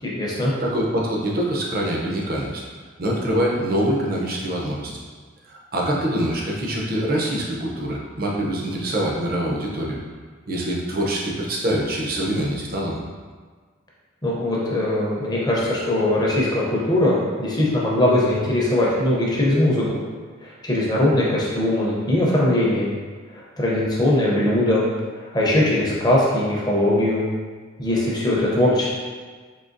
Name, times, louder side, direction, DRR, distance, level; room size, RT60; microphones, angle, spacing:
voice 1, 0.0-0.5 14.2-20.0 20.4-22.9 23.3-24.8 25.3-27.2 27.8-28.9, left 1 dB, 20° left, -5 dB, 0.6 m, -20 dB
voice 2, 0.6-2.6 3.0-5.0 5.5-10.0 10.5-13.0, right 1 dB, 45° right, -2 dB, 0.6 m, -24 dB
3.8 x 2.8 x 2.5 m, 1.5 s
head